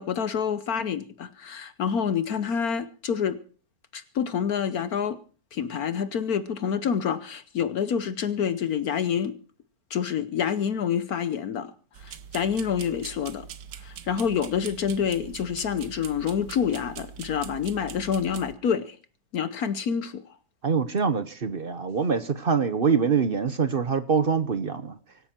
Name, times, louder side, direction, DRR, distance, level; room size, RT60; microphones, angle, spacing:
voice 1, 0.0-3.4 3.9-5.2 5.5-9.4 9.9-11.7 12.0-13.5 13.7-19.0 19.3-20.4, left 7 dB, 65° left, 1.3 m, -27 dB
sound 1, 11.9-18.5, right 8 dB, 80° right, 1.6 m, -42 dB
voice 2, 20.6-25.0, right 6 dB, 40° right, 0.9 m, -24 dB
25.0 x 9.9 x 4.4 m
omnidirectional pair, 1.8 m